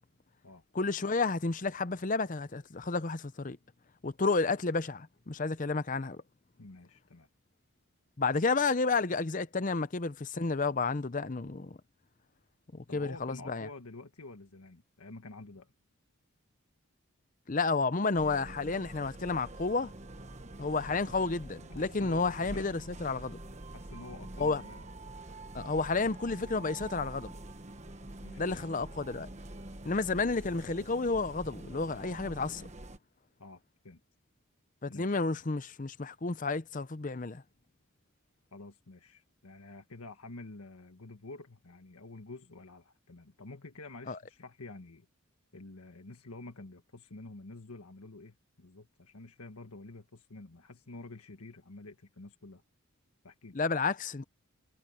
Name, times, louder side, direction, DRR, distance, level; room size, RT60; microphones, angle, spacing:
voice 1, 0.7-3.6 4.0-6.2 8.2-11.8 12.7-13.7 17.5-19.9 20.6-23.4 24.4-24.6 25.5-27.3 28.4-29.3 29.8-32.7 34.8-37.4 44.1-44.2 53.5-54.3, left 3 dB, 35° left, 0.6 m, -31 dB
voice 2, 6.6-7.3 12.9-15.7 21.7-22.8 23.7-24.8 28.2-28.9 33.4-34.0 34.9-35.2 38.5-45.1 45.5-52.6 53.2-53.6, left 2 dB, 90° left, 1.5 m, -49 dB
sound 1, 18.1-33.0, right 1 dB, 30° right, 1.3 m, -46 dB
head